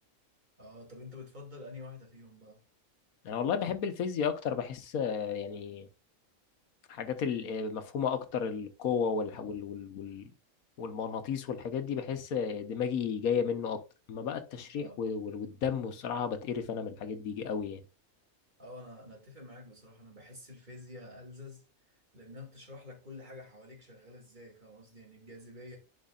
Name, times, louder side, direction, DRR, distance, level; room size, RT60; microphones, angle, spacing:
voice 1, 0.6-2.6 14.8-15.0 18.6-21.6 21.9-25.8, left 2 dB, 35° right, 2.2 m, -49 dB
voice 2, 3.2-5.9 6.9-10.3 10.8-13.8 14.1-17.8, left 6 dB, 90° left, 1.4 m, -33 dB
10.5 x 4.6 x 2.4 m
omnidirectional pair, 1.4 m